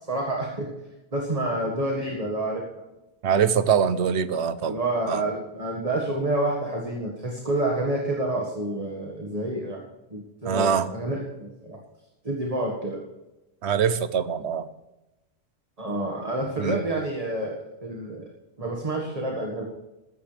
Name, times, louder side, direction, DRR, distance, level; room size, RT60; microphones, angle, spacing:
voice 1, 0.1-0.7 1.1-2.6 4.6-9.8 10.1-11.8 12.2-13.0 15.8-18.2 18.6-19.6, right 1 dB, 30° right, -1 dB, 1.8 m, -28 dB
voice 2, 3.2-4.8 5.0-5.2 10.4-10.9 13.6-14.7 16.6-16.8, right 7 dB, 70° right, 13 dB, 1.1 m, -23 dB
15.5 x 13.5 x 3.4 m, 0.98 s
omnidirectional pair, 1.2 m